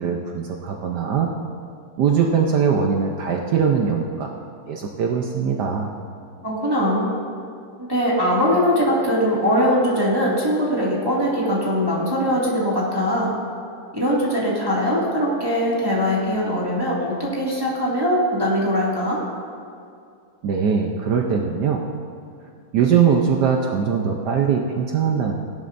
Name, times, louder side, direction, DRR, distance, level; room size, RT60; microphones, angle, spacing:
voice 1, 0.0-1.3 2.0-4.3 4.7-5.9 20.4-21.9 22.7-25.3, right 6 dB, 70° right, 1 dB, 1.3 m, -21 dB
voice 2, 6.4-7.1 7.8-13.4 13.9-19.2, equal, 10° right, -6 dB, 2.0 m, -21 dB
17.0 x 11.5 x 2.6 m, 2.3 s
omnidirectional pair, 2.0 m